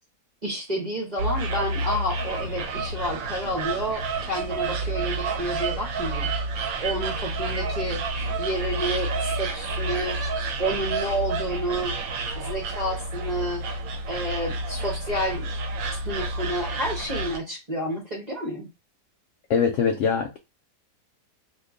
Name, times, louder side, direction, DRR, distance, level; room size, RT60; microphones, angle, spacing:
voice 1, 0.4-6.3 6.8-8.0 8.4-10.2 10.6-12.0 12.3-13.7 14.1-15.4 16.0-18.7, equal, 40° right, 0.6 m, -30 dB
sound 1, 1.2-17.4, right 3 dB, 65° right, 1.0 m, -29 dB
voice 2, 19.5-20.4, left 6 dB, 75° left, 0.7 m, -22 dB
2.9 x 2.5 x 3.5 m
omnidirectional pair, 1.8 m